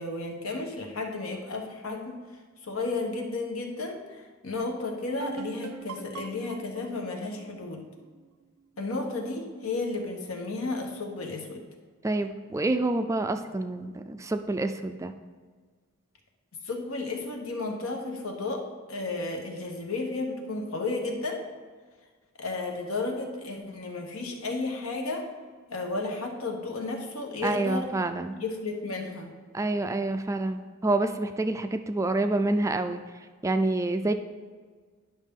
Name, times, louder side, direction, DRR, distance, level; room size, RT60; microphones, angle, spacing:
voice 1, 0.0-2.2 2.6-7.9 8.8-11.6 16.6-21.4 22.4-25.3 25.7-27.9 28.3-29.3, left 3 dB, 85° left, 3 dB, 1.1 m, -33 dB
sound 1, 5.2-8.8, right 6 dB, 85° right, 0.4 m, -43 dB
voice 2, 12.0-15.1 27.4-28.4 29.5-33.0 33.4-34.1, right 2 dB, 15° right, 8 dB, 0.3 m, -27 dB
10.0 x 5.7 x 3.6 m, 1.5 s
head